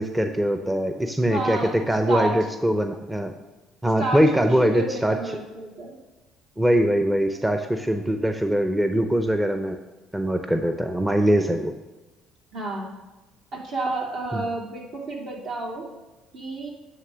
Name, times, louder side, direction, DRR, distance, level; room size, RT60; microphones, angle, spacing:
voice 1, 0.0-1.6 1.9-3.3 3.8-5.2 6.6-9.8 10.1-11.7 14.3-14.5, equal, 10° right, 6 dB, 0.6 m, -22 dB
voice 2, 1.3-1.8 2.1-2.4 4.0-5.9 12.5-12.9 13.5-15.9 16.3-16.7, right 2 dB, 65° right, -2 dB, 2.5 m, -30 dB
9.4 x 3.3 x 6.2 m, 1.1 s
supercardioid pair, 85°, 0 cm